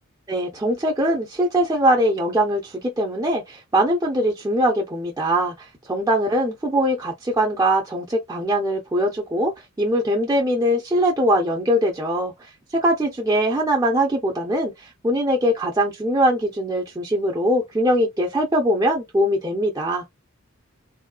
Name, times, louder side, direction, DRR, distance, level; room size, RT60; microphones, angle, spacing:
voice 1, 0.3-5.5 5.9-9.5 9.8-12.3 12.8-14.7 15.0-20.0, equal, 15° right, 0.7 m, -21 dB
3.4 x 2.3 x 2.3 m
head